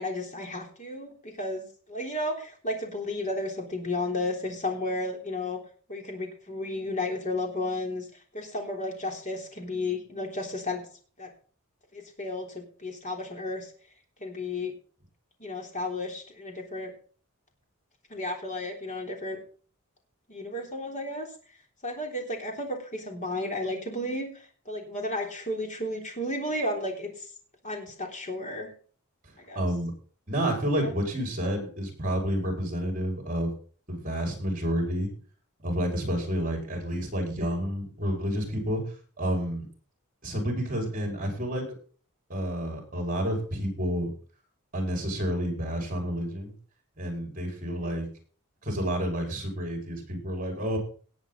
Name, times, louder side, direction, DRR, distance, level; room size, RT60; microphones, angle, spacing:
voice 1, 0.0-5.6 5.9-8.1 8.3-10.8 11.2-11.3 11.9-13.7 14.2-14.7 15.4-16.9 18.1-19.4 20.3-21.3 21.8-24.3 24.7-27.3 27.6-28.7 29.4-29.7 30.8-30.9 36.2-36.3 47.7-47.9, left 2 dB, 35° left, 1 dB, 3.5 m, -33 dB
voice 2, 29.6-29.9 30.3-33.5 33.9-35.1 35.6-38.8 39.2-39.7 40.2-41.6 42.3-44.1 44.7-46.5 47.0-48.1 48.6-50.8, equal, 40° right, 2 dB, 5.3 m, -29 dB
18.5 x 8.0 x 3.9 m, 0.42 s
head